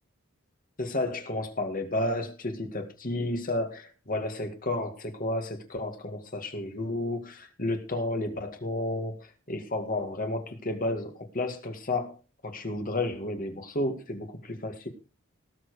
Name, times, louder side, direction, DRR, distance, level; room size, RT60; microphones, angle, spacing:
voice 1, 0.8-12.2 12.4-14.9, left 2 dB, 40° left, 5 dB, 2.0 m, -32 dB
18.5 x 7.4 x 4.9 m, 0.32 s
head